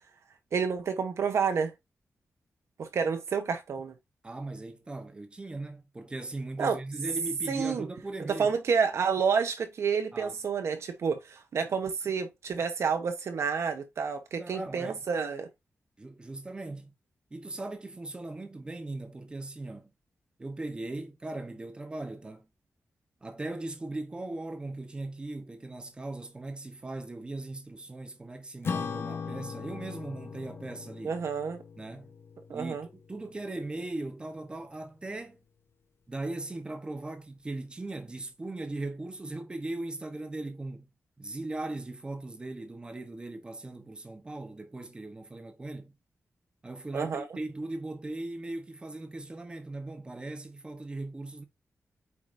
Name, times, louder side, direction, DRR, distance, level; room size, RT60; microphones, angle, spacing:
voice 1, 0.5-1.7 2.8-3.9 6.6-6.8 7.5-7.9 8.3-15.5 31.0-31.6 32.5-32.9 46.9-47.3, right 6 dB, 65° right, 0.9 m, -29 dB
voice 2, 4.2-8.5 10.1-10.4 14.4-15.0 16.0-16.9 17.3-19.9 20.4-22.5 23.2-31.2 31.8-32.1 32.5-35.4 36.1-40.9 41.2-45.9 46.6-51.4, right 2 dB, 20° right, 0.9 m, -39 dB
Acoustic guitar / Strum, 28.6-33.4, left 5 dB, 50° left, 0.9 m, -39 dB
8.7 x 4.8 x 2.6 m
wide cardioid pair, 180°, 5 cm